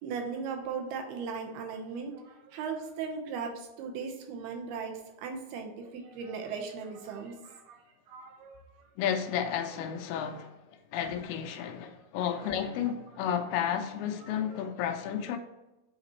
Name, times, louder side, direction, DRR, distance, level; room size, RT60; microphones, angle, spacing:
voice 1, 0.0-7.8 8.1-8.8 11.8-11.9 14.4-14.8, right 5 dB, 85° right, 2.9 m, -38 dB
voice 2, 9.0-10.5 10.9-15.4, left 9 dB, 85° left, 2.7 m, -32 dB
8.2 x 4.0 x 3.0 m
omnidirectional pair, 4.4 m